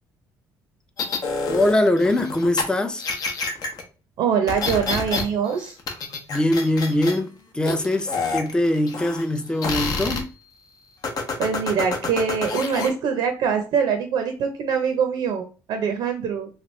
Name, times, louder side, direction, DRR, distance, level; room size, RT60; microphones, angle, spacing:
sound 1, 1.0-2.6 3.0-3.8 4.5-5.2 5.5-7.2 7.6-9.4 9.6-10.2 11.0-12.9, left 4 dB, 60° left, 0.8 m, -27 dB
voice 1, 1.5-3.1 6.3-7.3 7.5-10.3, left 1 dB, 10° left, 0.5 m, -22 dB
voice 2, 4.2-5.8 11.4-16.5, right 6 dB, 75° right, 0.5 m, -23 dB
3.0 x 2.4 x 3.0 m
cardioid pair, 100°, 7 cm